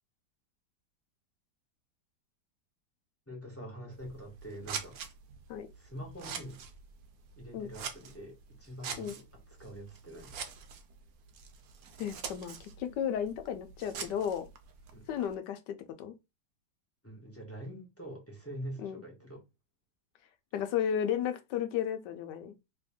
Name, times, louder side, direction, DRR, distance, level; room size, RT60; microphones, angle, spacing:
voice 1, 3.3-5.0 5.7-6.6 7.4-10.4 14.9-15.1 17.0-19.4, right 1 dB, 10° left, 0.6 m, -45 dB
Scissors, 3.9-15.3, right 6 dB, 70° right, 0.9 m, -45 dB
voice 2, 12.0-14.5 15.1-16.1 18.8-19.0 20.5-22.5, left 9 dB, 70° left, 1.1 m, -34 dB
3.2 x 2.6 x 3.5 m
omnidirectional pair, 2.1 m